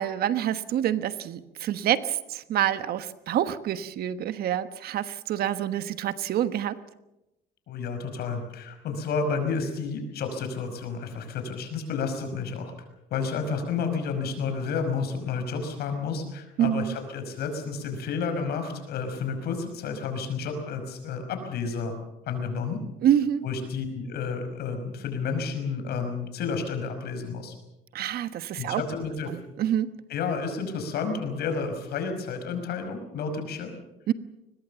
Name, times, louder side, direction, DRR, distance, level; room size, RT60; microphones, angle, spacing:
voice 1, 0.0-6.8 16.6-17.0 23.0-23.4 27.9-28.8 29.3-29.9 34.1-34.2, right 11 dB, 65° right, 12 dB, 1.2 m, -27 dB
voice 2, 7.7-12.7 13.1-21.9 22.3-22.8 23.4-27.5 28.6-29.3 30.1-33.7, left 5 dB, 70° left, 6 dB, 5.6 m, -31 dB
22.5 x 20.5 x 7.0 m, 0.94 s
cardioid pair, 110°, 17 cm